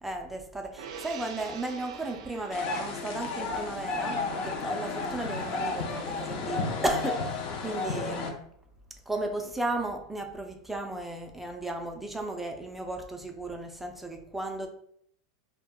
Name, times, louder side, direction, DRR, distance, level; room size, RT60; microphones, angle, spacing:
voice 1, 0.0-8.3 9.1-14.7, right 2 dB, 5° right, 3 dB, 0.4 m, -35 dB
Gong, 0.8-7.4 7.7-7.9, right 7 dB, 75° right, 0.4 m, -48 dB
sound 1, 2.5-8.3, left 3 dB, 45° left, 0.5 m, -32 dB
2.1 x 2.0 x 3.6 m, 0.66 s
supercardioid pair, 125°, 3 cm